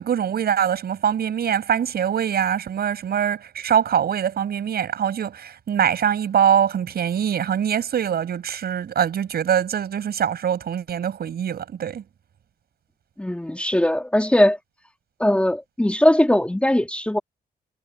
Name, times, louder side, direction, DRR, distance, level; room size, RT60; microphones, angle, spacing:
voice 1, 0.0-12.0, right 8 dB, 65° right, 7.5 m, -23 dB
voice 2, 13.2-14.6 15.2-17.2, left 1 dB, 5° left, 2.3 m, -19 dB
cardioid pair, 95°, 17 cm